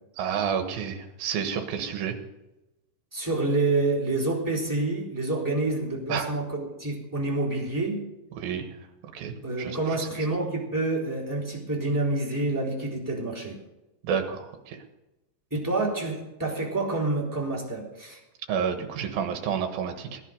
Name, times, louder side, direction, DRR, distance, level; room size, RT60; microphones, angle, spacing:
voice 1, 0.2-2.2 6.1-6.3 8.3-8.7 9.1-10.1 14.0-14.8 18.5-20.2, right 7 dB, 65° right, 5 dB, 2.9 m, -30 dB
voice 2, 3.1-8.0 9.4-13.6 15.5-18.2, right 2 dB, 5° right, -5 dB, 3.2 m, -28 dB
17.0 x 11.0 x 5.3 m, 0.98 s
omnidirectional pair, 4.9 m